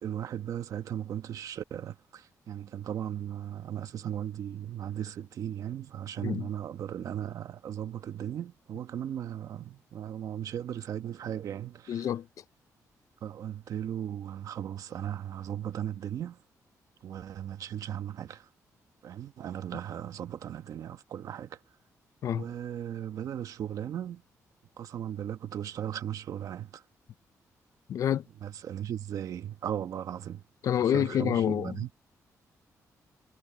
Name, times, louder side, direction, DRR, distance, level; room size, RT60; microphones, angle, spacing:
voice 1, 0.0-12.1 13.2-16.4 17.0-18.5 19.0-21.6 22.3-24.2 24.8-26.8 28.4-30.4 30.8-31.9, right 10 dB, 65° right, 1.3 m, -37 dB
voice 2, 11.9-12.3 22.2-22.5 27.9-28.2 30.6-31.8, left 10 dB, 60° left, 0.5 m, -27 dB
cardioid pair, 135°, 6 cm